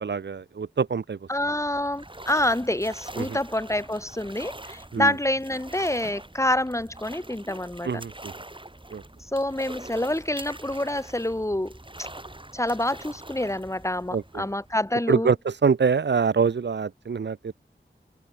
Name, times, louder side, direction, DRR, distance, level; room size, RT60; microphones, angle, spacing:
voice 1, 0.0-1.2 3.2-3.4 4.9-5.1 7.8-8.3 8.9-9.0 14.1-14.5 15.1-17.5, right 5 dB, 70° right, 0.6 m, -25 dB
sound 1, 1.2-15.0, right 1 dB, 25° right, 7.0 m, -44 dB
voice 2, 1.3-7.9 9.3-11.8 12.5-15.3, left 1 dB, 15° left, 1.2 m, -27 dB
wide cardioid pair, 70°, 19 cm